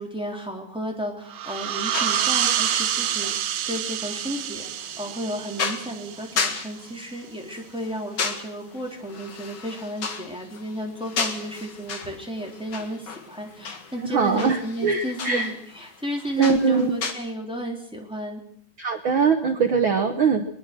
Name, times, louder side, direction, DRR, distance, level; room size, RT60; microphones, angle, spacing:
voice 1, 0.0-4.6 5.0-18.4, equal, ahead, 1 dB, 3.2 m, -33 dB
sound 1, 1.3-6.6, right 10 dB, 65° right, 1.9 m, -27 dB
sound 2, 1.5-17.1, left 5 dB, 40° left, 2.1 m, -35 dB
voice 2, 14.0-14.6 14.8-15.5 16.4-16.9 18.8-20.4, right 5 dB, 80° right, 7 dB, 1.1 m, -21 dB
21.5 x 21.5 x 6.2 m, 0.62 s
omnidirectional pair, 4.3 m